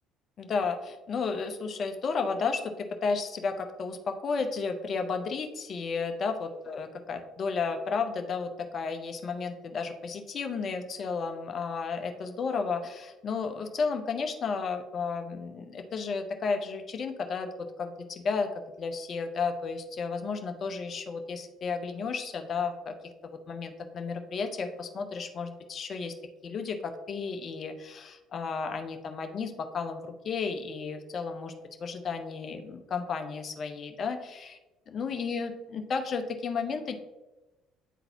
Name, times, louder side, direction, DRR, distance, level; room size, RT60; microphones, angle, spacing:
voice 1, 0.4-17.5 17.8-18.5 18.8-22.9 23.2-26.1 26.4-31.5 31.8-34.6 34.9-36.9, left 5 dB, 45° left, 6 dB, 0.7 m, -33 dB
9.0 x 3.9 x 2.8 m, 1.1 s
hypercardioid pair, 55°, 0 cm